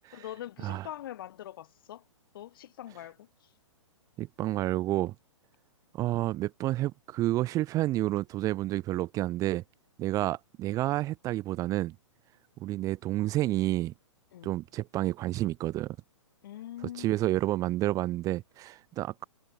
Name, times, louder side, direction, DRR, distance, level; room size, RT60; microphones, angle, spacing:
voice 1, 0.1-2.0 2.3-3.5 14.3-14.5 16.4-17.2, left 12 dB, 45° left, 3.9 m, -43 dB
voice 2, 4.2-5.1 5.9-9.6 10.0-11.9 12.6-13.9 14.4-16.0 17.0-19.2, right 15 dB, 20° right, 1.5 m, -30 dB
figure-of-eight pair, 120°, 16 cm